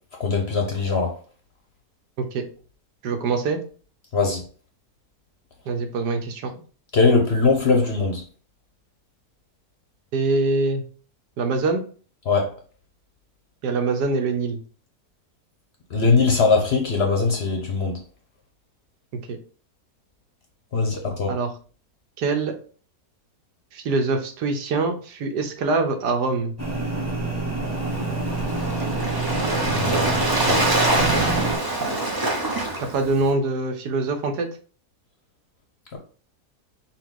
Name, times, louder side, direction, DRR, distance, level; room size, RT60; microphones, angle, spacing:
voice 1, 0.2-1.1 4.1-4.4 6.9-8.2 12.3-12.5 15.9-18.0 20.7-21.3 29.7-30.6 35.9-36.0, left 4 dB, 55° left, 0.8 m, -21 dB
voice 2, 3.0-3.6 5.7-6.6 10.1-10.8 11.4-11.8 13.6-14.6 19.3-19.4 21.3-21.5 22.2-22.5 23.7-26.5 32.8-34.5, right 3 dB, 85° right, 1.4 m, -24 dB
sound 1, 26.6-31.6, right 3 dB, 10° right, 0.9 m, -27 dB
Waves surf, 27.6-33.3, right 2 dB, 30° right, 0.4 m, -25 dB
5.7 x 2.3 x 3.6 m
omnidirectional pair, 1.7 m